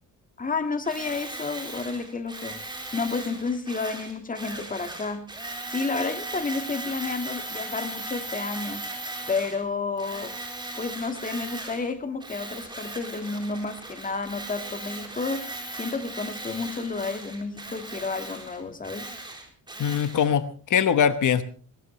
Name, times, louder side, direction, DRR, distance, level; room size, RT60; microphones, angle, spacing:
voice 1, 0.4-2.6 2.9-5.3 5.7-8.9 9.3-10.4 10.7-19.2, left 4 dB, 25° left, 7 dB, 1.7 m, -31 dB
Tools, 0.8-9.6 10.0-11.9 12.2-20.3, right 2 dB, 15° right, 3.8 m, -38 dB
voice 2, 19.8-21.4, left 8 dB, 60° left, 12 dB, 1.1 m, -22 dB
20.5 x 17.5 x 3.2 m, 0.41 s
cardioid pair, 145°, 35 cm